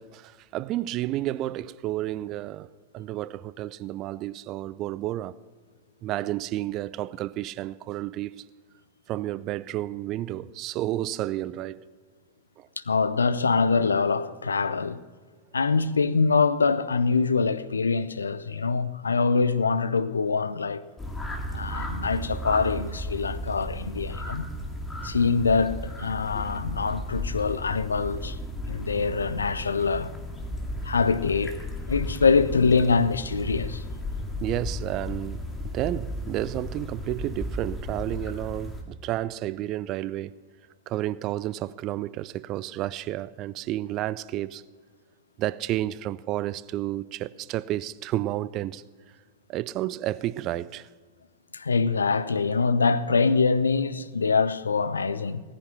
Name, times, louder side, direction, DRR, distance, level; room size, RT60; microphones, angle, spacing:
voice 1, 0.0-2.7 2.9-5.3 6.0-8.5 9.1-11.9 12.6-12.7 26.3-26.4 34.4-40.4 40.9-44.6 45.4-48.8 49.5-50.9, right 14 dB, 35° right, 0.4 m, -31 dB
voice 2, 12.8-15.0 15.5-20.8 21.5-24.5 25.0-28.4 28.7-30.1 30.8-31.6 31.9-33.8 51.5-55.4, left 4 dB, 75° left, 0.6 m, -24 dB
sound 1, 21.0-38.8, left 1 dB, 10° left, 2.1 m, -34 dB
17.0 x 9.8 x 5.9 m
figure-of-eight pair, 90°, 0 cm